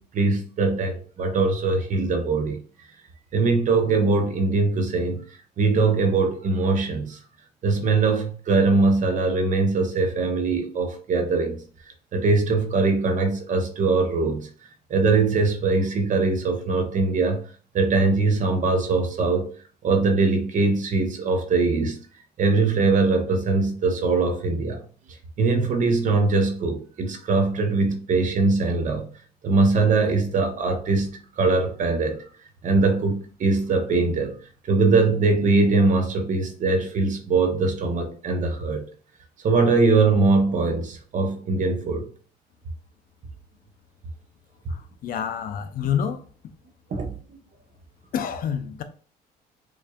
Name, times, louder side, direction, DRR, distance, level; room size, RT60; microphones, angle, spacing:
voice 1, 0.0-2.6 3.3-5.2 5.6-7.2 7.6-11.6 12.1-14.5 14.9-17.4 17.7-19.5 19.8-22.0 22.4-24.8 25.4-29.1 29.4-32.2 32.6-34.4 34.6-38.9 39.4-42.1 46.9-47.1, right 3 dB, 50° right, 0.9 m, -22 dB
voice 2, 44.7-46.3 48.1-48.8, left 8 dB, 55° left, 0.5 m, -28 dB
4.7 x 2.6 x 2.3 m
cardioid pair, 110°, 17 cm